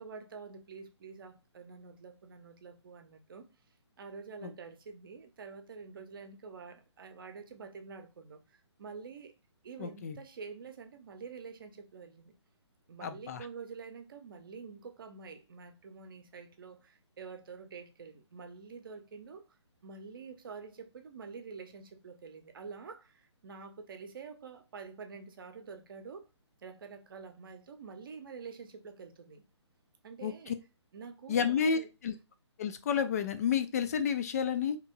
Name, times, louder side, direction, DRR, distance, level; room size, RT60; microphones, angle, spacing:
voice 1, 0.0-3.5 4.0-9.3 9.6-12.3 12.9-19.4 19.8-26.2 26.6-29.4 30.0-30.6 30.9-31.9, right 5 dB, 50° right, 0.7 m, -47 dB
voice 2, 9.8-10.2 13.0-13.4 30.2-30.5 31.3-32.1 32.6-34.8, left 7 dB, 35° left, 0.4 m, -31 dB
3.4 x 3.0 x 4.0 m
figure-of-eight pair, 135°, 15 cm